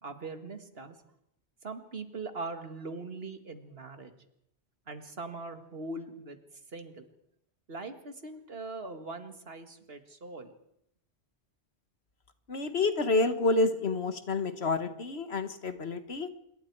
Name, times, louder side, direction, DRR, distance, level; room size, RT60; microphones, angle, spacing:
voice 1, 0.0-1.0 1.6-4.1 4.9-6.4 6.7-7.1 7.7-10.5, right 3 dB, 60° right, 8 dB, 2.1 m, -41 dB
voice 2, 12.5-16.3, left 3 dB, 65° left, 10 dB, 1.8 m, -28 dB
26.5 x 22.0 x 4.7 m, 0.76 s
omnidirectional pair, 1.1 m